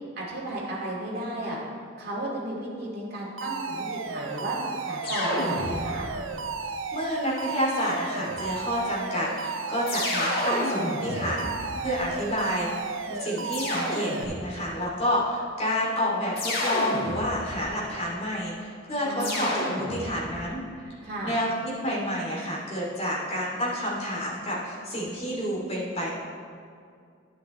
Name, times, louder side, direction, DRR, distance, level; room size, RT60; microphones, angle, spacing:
voice 1, 0.2-1.6 2.0-4.6 4.9-6.1 19.0-19.4 21.0-21.4, right 1 dB, 50° right, -4 dB, 2.4 m, -34 dB
Alarm, 3.4-14.2, right 4 dB, 80° right, 0.6 m, -34 dB
sound 1, 5.0-6.2 7.8-8.6 9.9-12.2 13.5-14.6 16.4-17.7 19.2-20.4, left 1 dB, 50° left, 1.8 m, -31 dB
voice 2, 6.9-20.9 21.2-26.2, equal, 30° left, -6 dB, 2.8 m, -29 dB
11.5 x 9.8 x 3.2 m, 2.3 s
head